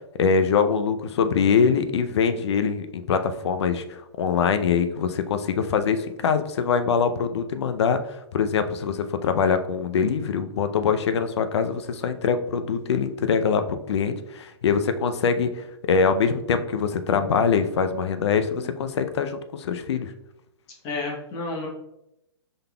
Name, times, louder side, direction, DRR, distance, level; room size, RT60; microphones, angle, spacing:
voice 1, 0.2-20.1, left 6 dB, 75° left, 9 dB, 0.5 m, -23 dB
voice 2, 20.8-21.7, left 3 dB, 25° left, -1 dB, 0.9 m, -31 dB
5.3 x 3.9 x 2.2 m, 0.86 s
hypercardioid pair, 155°, 15 cm